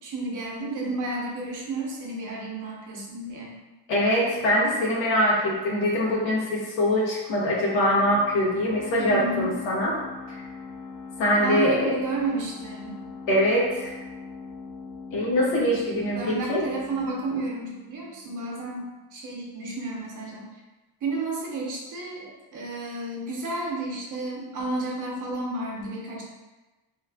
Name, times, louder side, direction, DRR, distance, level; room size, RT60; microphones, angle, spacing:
voice 1, 0.0-3.5 9.0-9.5 11.4-13.0 16.2-18.8 19.1-20.5 21.0-26.2, right 2 dB, 45° right, -2 dB, 0.8 m, -31 dB
voice 2, 3.9-9.9 10.3-10.4 11.2-12.0 13.3-14.0 15.1-16.6, left 1 dB, 85° left, -4 dB, 1.2 m, -23 dB
sound 1, 7.5-18.8, left 4 dB, 65° left, 1.0 m, -41 dB
3.2 x 2.4 x 3.4 m, 1.1 s
cardioid pair, 145°, 44 cm